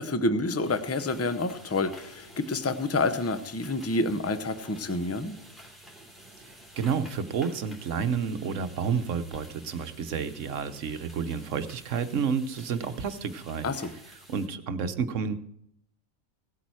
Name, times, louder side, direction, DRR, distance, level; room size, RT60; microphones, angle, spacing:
voice 1, 0.0-5.4 13.6-13.9, left 2 dB, 15° left, 11 dB, 0.5 m, -28 dB
sound 1, 0.6-14.5, right 1 dB, ahead, 2.9 m, -51 dB
voice 2, 6.8-13.7 14.3-15.3, right 6 dB, 70° right, 10 dB, 1.2 m, -30 dB
17.0 x 8.5 x 4.7 m, 0.73 s
omnidirectional pair, 1.4 m